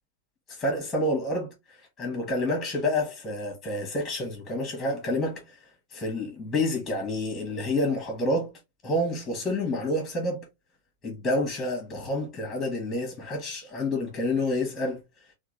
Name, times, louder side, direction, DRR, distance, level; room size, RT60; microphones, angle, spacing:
voice 1, 0.5-10.5 11.0-15.0, left 1 dB, 15° left, 1.2 m, -29 dB
3.6 x 2.2 x 3.0 m
figure-of-eight pair, 90°, 0 cm